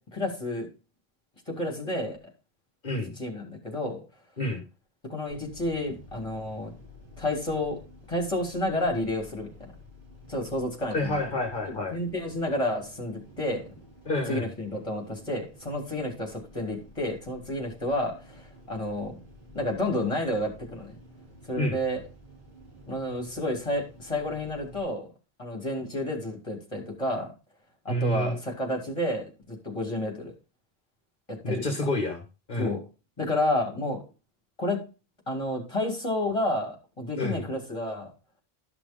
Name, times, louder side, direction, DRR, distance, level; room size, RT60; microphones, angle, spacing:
voice 1, 0.1-0.7 1.5-2.2 3.2-4.0 5.1-6.7 7.2-7.8 8.1-9.7 10.3-11.2 11.6-13.6 14.3-19.2 19.5-21.0 21.5-22.0 22.9-25.1 25.4-27.3 27.8-30.3 31.3-31.9 32.6-32.8 33.2-34.0 34.6-34.8 35.3-38.1, left 1 dB, 30° left, 1 dB, 3.4 m, -30 dB
voice 2, 2.8-3.1 4.4-4.6 10.9-12.0 14.0-14.5 21.6-21.7 27.9-28.3 31.4-32.2 32.5-32.7 37.2-37.4, left 1 dB, 55° left, 2 dB, 1.6 m, -28 dB
sound 1, 5.3-24.8, left 1 dB, 60° right, 6.5 m, -51 dB
13.0 x 6.0 x 3.8 m, 0.32 s
omnidirectional pair, 1.0 m